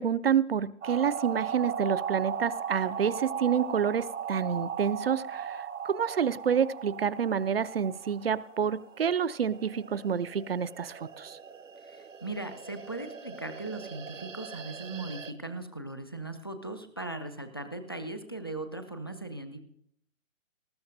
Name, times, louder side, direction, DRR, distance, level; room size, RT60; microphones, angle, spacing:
voice 1, 0.0-11.4, right 7 dB, 50° right, 18 dB, 0.4 m, -28 dB
sound 1, 0.8-15.3, right 7 dB, 70° right, 0.9 m, -38 dB
voice 2, 11.8-19.6, right 2 dB, 20° left, 8 dB, 0.4 m, -39 dB
19.0 x 14.0 x 2.6 m, 0.73 s
figure-of-eight pair, 135°, 39 cm